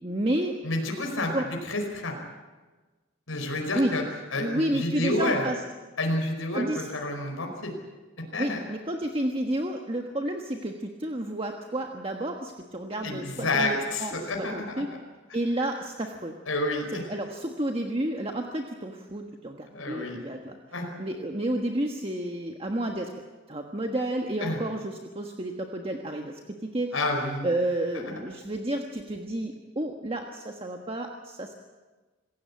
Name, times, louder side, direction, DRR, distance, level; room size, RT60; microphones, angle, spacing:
voice 1, 0.0-0.6 1.3-1.5 3.7-4.0 4.4-5.6 6.5-6.9 8.4-14.9 15.3-16.4 17.1-20.6 21.0-23.1 23.5-27.0 27.4-31.6, right 1 dB, 30° right, 2 dB, 1.4 m, -31 dB
voice 2, 0.6-1.3 1.6-2.1 3.3-4.0 4.3-5.5 6.0-7.7 8.3-8.6 13.0-14.8 16.5-17.0 19.7-20.2 20.7-20.9 24.4-24.6 26.9-27.5 28.0-28.1, left 2 dB, 90° left, 2 dB, 4.9 m, -29 dB
27.0 x 16.0 x 8.6 m, 1.3 s
head